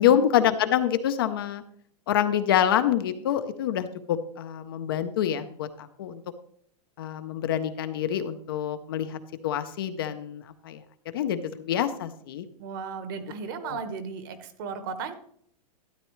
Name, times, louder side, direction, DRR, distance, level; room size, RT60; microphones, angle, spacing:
voice 1, 0.0-1.6 2.1-6.2 7.0-10.8 11.1-12.4 13.6-13.8, left 10 dB, 35° left, 10 dB, 0.6 m, -26 dB
voice 2, 12.6-15.1, right 5 dB, 35° right, 10 dB, 1.0 m, -35 dB
12.5 x 9.7 x 3.1 m, 0.66 s
supercardioid pair, 175°, 20 cm